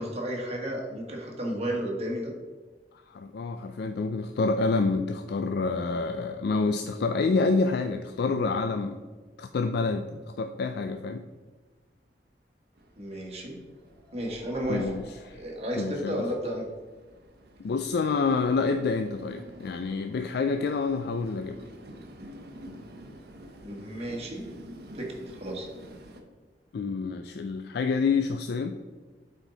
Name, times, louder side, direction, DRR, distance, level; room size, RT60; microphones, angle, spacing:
voice 1, 0.0-2.3 13.0-13.6 14.1-14.9 15.3-16.7 23.6-24.4 24.9-25.7, equal, 40° right, -1 dB, 1.6 m, -33 dB
voice 2, 3.1-9.0 9.4-11.2 14.7-15.4 15.8-16.2 17.6-21.6 26.7-28.8, left 4 dB, 65° left, 7 dB, 0.4 m, -28 dB
Train, 12.7-26.2, equal, 65° right, 0.9 m, -49 dB
sound 1, 13.7-16.3, equal, 15° left, 1.6 m, -50 dB
8.1 x 4.5 x 3.9 m, 1.4 s
head